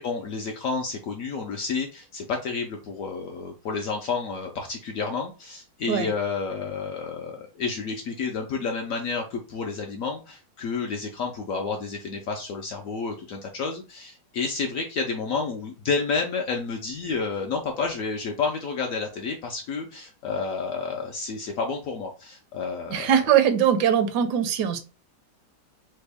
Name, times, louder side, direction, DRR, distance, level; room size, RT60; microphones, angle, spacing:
voice 1, 0.0-23.1, left 4 dB, 70° left, 2 dB, 0.8 m, -30 dB
voice 2, 22.9-24.8, right 9 dB, 80° right, 9 dB, 1.1 m, -21 dB
3.3 x 2.2 x 3.3 m, 0.32 s
omnidirectional pair, 1.8 m